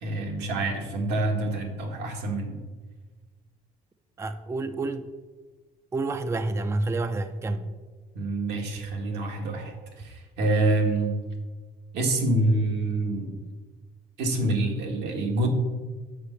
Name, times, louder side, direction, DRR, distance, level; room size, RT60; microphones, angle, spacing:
voice 1, 0.0-2.6 8.1-11.1 11.9-13.4 14.2-15.5, right 2 dB, 85° right, 1 dB, 1.7 m, -26 dB
voice 2, 4.2-5.1 5.9-7.7, right 2 dB, 15° right, 10 dB, 0.4 m, -29 dB
6.8 x 5.0 x 6.8 m, 1.3 s
cardioid pair, 110°, 17 cm